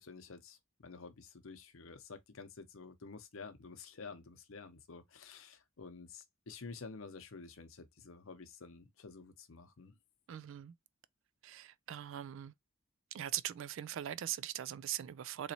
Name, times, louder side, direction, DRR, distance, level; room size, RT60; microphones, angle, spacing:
voice 1, 0.0-9.9, left 4 dB, 75° left, 0.8 m, -50 dB
voice 2, 10.3-10.7 11.4-12.5 13.1-15.5, right 12 dB, 65° right, 0.3 m, -41 dB
4.0 x 3.0 x 2.7 m
head